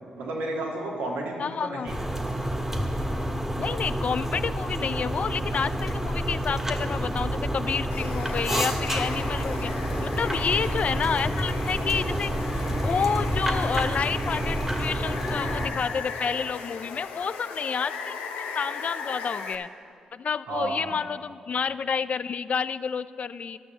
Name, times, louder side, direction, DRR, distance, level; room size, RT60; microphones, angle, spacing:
voice 1, 0.1-2.0 20.5-20.9, right 2 dB, 85° right, -2 dB, 1.7 m, -32 dB
voice 2, 1.4-1.9 3.6-9.7 10.0-12.3 12.7-18.2 18.5-19.7 20.1-23.6, left 6 dB, 55° left, 15 dB, 0.3 m, -29 dB
sound 1, 1.9-15.7, equal, 10° right, 1.4 m, -28 dB
Water, 7.9-19.6, left 5 dB, 85° left, 0.6 m, -37 dB
12.0 x 6.1 x 6.8 m, 2.4 s
supercardioid pair, 45°, 3 cm